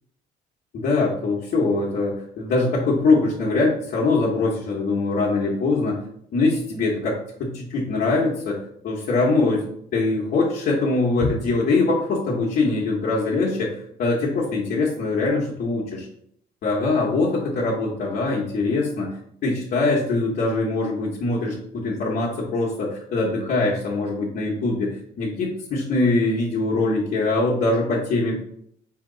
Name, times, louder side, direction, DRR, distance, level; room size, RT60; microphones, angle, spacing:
voice 1, 0.7-6.0 6.3-8.6 8.8-9.6 9.9-13.7 14.0-16.1 16.6-19.1 19.4-28.4, left 3 dB, 60° left, -5 dB, 1.1 m, -22 dB
4.4 x 2.9 x 3.8 m, 0.69 s
cardioid pair, 110°, 17 cm